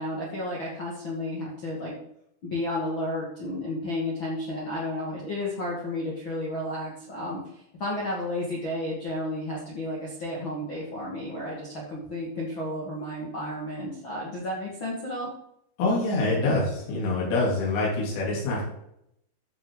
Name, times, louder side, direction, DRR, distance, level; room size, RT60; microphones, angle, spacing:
voice 1, 0.0-1.9 2.4-15.3, left 1 dB, 65° left, -5 dB, 1.2 m, -32 dB
voice 2, 15.8-18.6, left 2 dB, 85° left, -4 dB, 5.9 m, -25 dB
14.5 x 6.1 x 3.9 m, 0.76 s
omnidirectional pair, 5.6 m